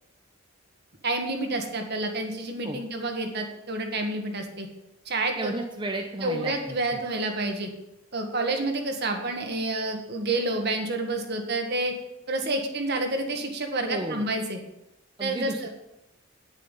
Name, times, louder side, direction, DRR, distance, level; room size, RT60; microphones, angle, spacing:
voice 1, 1.0-4.7 5.0-5.5 6.2-7.7 8.1-11.9 12.3-14.6 15.2-15.7, right 2 dB, 55° right, 4 dB, 1.7 m, -29 dB
voice 2, 5.4-7.0 13.9-14.2 15.2-15.7, right 2 dB, 25° right, 2 dB, 0.8 m, -33 dB
9.4 x 8.6 x 5.6 m, 0.90 s
head